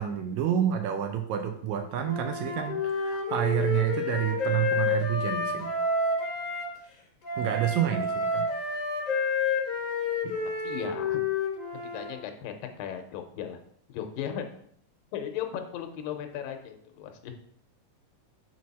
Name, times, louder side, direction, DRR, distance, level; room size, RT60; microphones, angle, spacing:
voice 1, 0.0-5.7 7.4-8.4 10.2-10.4, right 10 dB, 85° right, 5 dB, 1.6 m, -29 dB
Wind instrument woodwind instrument, 2.0-6.7 7.2-12.1, left 3 dB, 35° left, 2.0 m, -29 dB
voice 2, 10.6-11.2 11.8-13.6 13.9-14.4 15.1-17.3, left 9 dB, 85° left, 6 dB, 2.5 m, -36 dB
6.0 x 4.6 x 4.1 m, 0.65 s
omnidirectional pair, 3.9 m